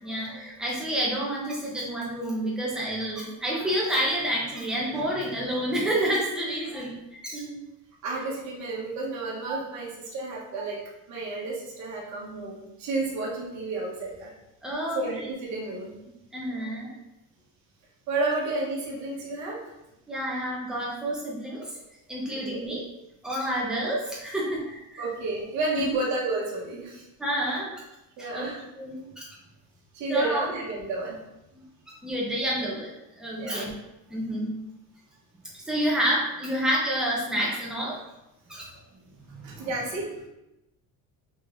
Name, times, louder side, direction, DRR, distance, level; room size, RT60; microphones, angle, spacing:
voice 1, 0.0-7.6 9.5-9.6 14.6-15.0 16.3-16.9 20.1-21.8 22.1-22.8 23.2-25.1 25.7-25.8 27.2-27.7 28.2-28.5 28.8-29.3 30.1-30.4 31.5-31.6 32.0-33.7 34.1-34.6 35.5-38.0 38.5-38.7 39.4-39.7, right 1 dB, ahead, -5 dB, 0.9 m, -29 dB
voice 2, 8.0-10.8 11.1-14.3 14.9-15.9 18.1-19.6 22.4-22.6 25.0-27.0 28.2-28.6 29.9-31.2 33.4-33.7 39.4-40.3, right 2 dB, 50° right, -4 dB, 1.3 m, -31 dB
5.3 x 3.7 x 2.6 m, 0.91 s
cardioid pair, 175°, 37 cm